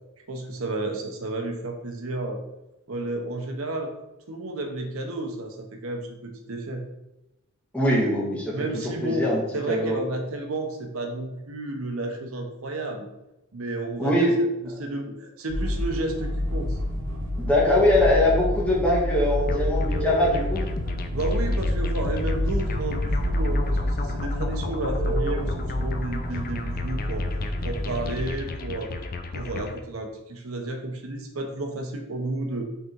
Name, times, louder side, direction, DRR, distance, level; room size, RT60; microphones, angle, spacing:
voice 1, 0.3-2.4 2.9-3.9 4.3-6.8 8.5-13.1 13.5-14.3 14.6-16.8 21.1-28.9 29.3-32.6, right 2 dB, 85° right, 4 dB, 0.9 m, -32 dB
voice 2, 7.7-9.4 9.7-10.0 14.0-14.3 17.4-20.6, left 1 dB, 5° left, -5 dB, 1.6 m, -22 dB
sound 1, 15.5-28.3, left 1 dB, 70° right, 1.5 m, -28 dB
sound 2, 19.4-20.3 21.5-21.6 25.0-25.3, right 5 dB, 50° right, 1.2 m, -30 dB
sound 3, 19.5-29.8, left 3 dB, 45° left, 0.5 m, -35 dB
5.6 x 3.7 x 4.5 m, 0.93 s
head